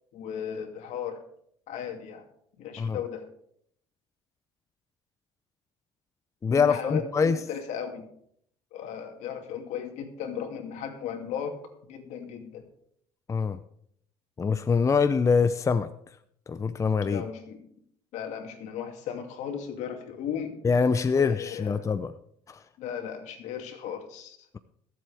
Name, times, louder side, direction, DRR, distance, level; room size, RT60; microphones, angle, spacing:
voice 1, 0.1-1.2 1.7-2.2 2.6-3.2 6.5-8.0 8.7-11.6 11.9-12.6 17.0-17.7 18.1-20.6 21.1-21.9 22.8-24.4, left 8 dB, 65° left, 4 dB, 2.5 m, -36 dB
voice 2, 6.4-7.4 13.3-13.6 14.4-15.9 16.5-17.2 20.6-22.1 22.5-22.6, left 5 dB, 25° left, 12 dB, 0.6 m, -24 dB
22.5 x 7.8 x 3.5 m, 0.69 s
supercardioid pair, 80°, 13 cm